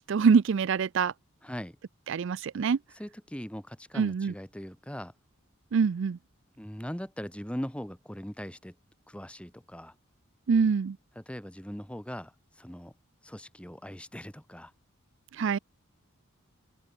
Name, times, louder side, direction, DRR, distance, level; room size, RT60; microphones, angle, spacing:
voice 1, 0.1-1.1 2.1-2.8 3.9-4.3 5.7-6.2 10.5-11.0 15.3-15.6, right 5 dB, 60° right, 0.4 m, -24 dB
voice 2, 1.4-1.8 2.9-5.1 6.6-8.8 9.1-9.9 11.1-12.9 13.2-14.7, equal, 5° left, 1.7 m, -40 dB
open air
head